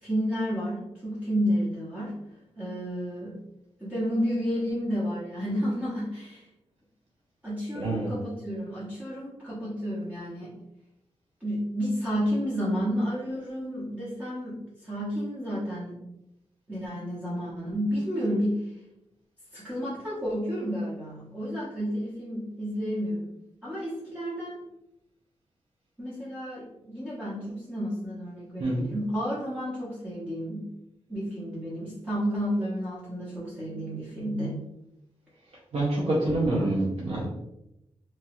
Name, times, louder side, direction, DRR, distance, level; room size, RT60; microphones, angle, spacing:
voice 1, 0.0-2.2 2.6-3.4 3.8-6.5 7.4-10.5 11.4-16.0 16.7-18.7 19.5-23.3 23.6-24.6 26.0-30.7 31.1-34.7, equal, 15° right, -10 dB, 0.8 m, -31 dB
voice 2, 7.7-8.1 28.6-28.9 35.7-37.3, right 1 dB, 75° right, -5 dB, 0.7 m, -26 dB
2.9 x 2.3 x 2.9 m, 0.87 s
wide cardioid pair, 145°, 11 cm